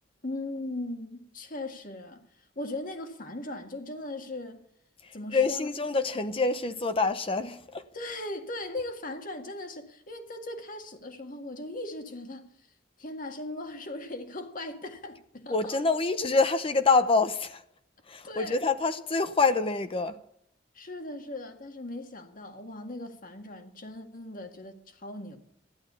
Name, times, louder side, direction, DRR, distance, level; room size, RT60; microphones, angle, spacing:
voice 1, 0.2-4.6 5.1-5.7 7.9-12.5 13.0-15.8 18.2-18.6 20.7-25.4, left 2 dB, 50° left, 1.9 m, -38 dB
voice 2, 5.0-7.9 15.5-17.6 18.1-20.2, left 4 dB, 30° left, 0.8 m, -26 dB
14.0 x 11.5 x 6.9 m
head